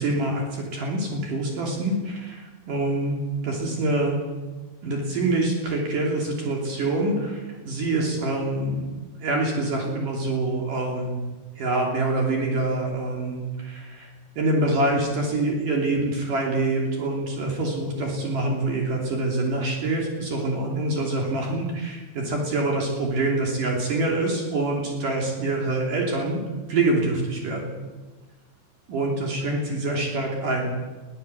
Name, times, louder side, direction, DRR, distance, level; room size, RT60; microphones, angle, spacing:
voice 1, 0.0-3.2 3.4-4.2 4.8-8.9 9.2-11.2 11.6-14.1 14.4-26.4 26.7-27.7 28.9-30.7, right 2 dB, 55° right, 0 dB, 4.5 m, -25 dB
21.5 x 15.5 x 8.1 m, 1.3 s
omnidirectional pair, 4.5 m